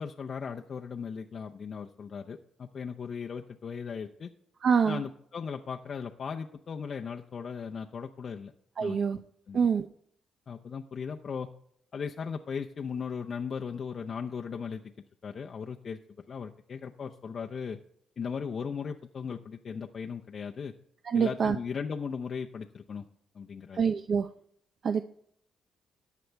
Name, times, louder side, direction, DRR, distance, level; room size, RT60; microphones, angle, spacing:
voice 1, 0.0-4.3 4.9-8.5 8.8-9.7 10.5-11.5 11.9-14.9 15.2-16.0 16.3-17.8 18.2-20.7 21.1-23.1 23.3-23.8, left 6 dB, 50° left, 2 dB, 0.6 m, -37 dB
voice 2, 4.6-5.0 8.8-9.2 9.5-9.9 21.0-21.6 23.7-24.3 24.8-25.0, right 6 dB, 50° right, 9 dB, 0.5 m, -25 dB
14.0 x 9.2 x 3.4 m, 0.68 s
cardioid pair, 90°, 0 cm